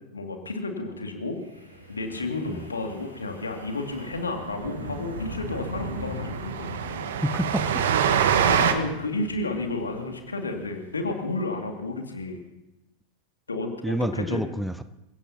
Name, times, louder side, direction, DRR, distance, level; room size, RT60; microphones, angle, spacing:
voice 1, 0.0-1.4 1.9-6.7 8.5-12.4 13.5-14.4, left 2 dB, 75° left, 3 dB, 2.4 m, -31 dB
Wind, 1.4-11.6, equal, 85° right, 2.8 m, -40 dB
Train, 4.2-4.3 4.5-4.7 4.9-5.0 5.4-8.7, right 8 dB, 60° right, 1.2 m, -25 dB
voice 2, 7.2-7.7 13.8-14.8, right 1 dB, ahead, 12 dB, 0.7 m, -28 dB
27.0 x 17.0 x 2.9 m, 0.92 s
figure-of-eight pair, 90°, 0 cm